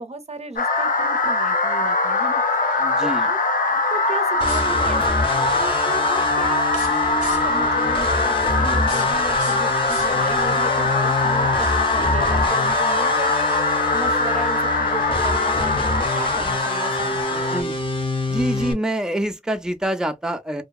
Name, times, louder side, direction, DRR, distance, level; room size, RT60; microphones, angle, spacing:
voice 1, 0.0-3.4 3.7-17.8, right 3 dB, 50° right, 0.6 m, -35 dB
sound 1, 0.6-17.6, left 3 dB, 75° left, 0.6 m, -21 dB
voice 2, 2.8-3.3 17.5-17.8 18.3-20.6, right 1 dB, 5° right, 0.5 m, -26 dB
Spray Bottle, 4.4-5.0 6.6-7.7 8.6-10.5, left 2 dB, 60° left, 1.3 m, -38 dB
sound 2, 4.4-18.7, left 1 dB, 35° left, 0.8 m, -27 dB
2.8 x 2.2 x 2.3 m
wide cardioid pair, 50°, 14 cm